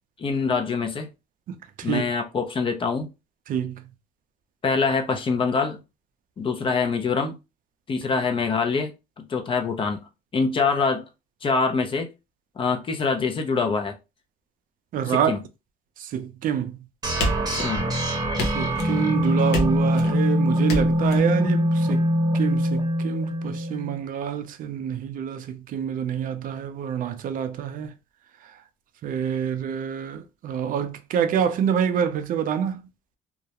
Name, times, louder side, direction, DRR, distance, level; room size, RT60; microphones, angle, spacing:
voice 1, 0.2-1.1 1.8-3.1 4.6-5.8 6.4-7.4 7.9-10.1 10.3-11.1 11.4-12.1 12.6-14.0 15.1-15.4 17.6-17.9, left 4 dB, 30° left, 0.5 m, -25 dB
voice 2, 1.5-2.0 3.5-3.8 14.9-15.3 16.0-16.8 18.4-22.1 22.3-27.9 28.4-28.6 29.0-32.9, right 8 dB, 55° right, 0.4 m, -27 dB
sound 1, 17.0-24.0, equal, 25° right, 0.8 m, -23 dB
sound 2, 17.2-18.0 18.4-19.0 19.5-20.2 20.7-21.2, equal, 85° left, 0.8 m, -29 dB
2.3 x 2.1 x 2.8 m
cardioid pair, 110°, 17 cm